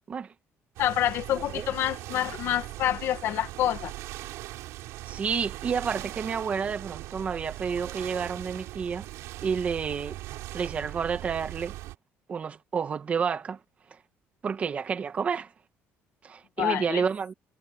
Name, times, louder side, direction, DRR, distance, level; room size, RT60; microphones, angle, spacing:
voice 1, 0.8-3.9 16.6-17.0, left 12 dB, 60° left, 2.0 m, -27 dB
sound 1, 0.8-12.0, right 17 dB, 85° right, 7.8 m, -40 dB
voice 2, 5.1-9.1 9.4-10.2 10.5-11.7 12.3-13.6 14.4-15.5 16.2-17.3, right 6 dB, 30° right, 1.8 m, -30 dB
cardioid pair, 160°, 5 cm